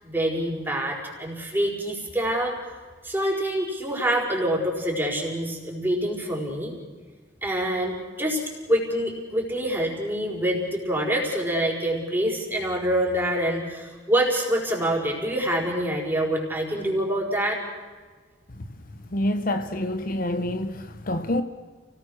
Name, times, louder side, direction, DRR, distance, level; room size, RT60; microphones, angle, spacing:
voice 1, 0.0-2.5 3.0-6.8 7.4-8.4 8.7-17.6, right 1 dB, 10° right, 5.1 m, -26 dB
voice 2, 19.1-21.4, left 1 dB, 50° left, 1.1 m, -27 dB
29.5 x 18.5 x 6.4 m
head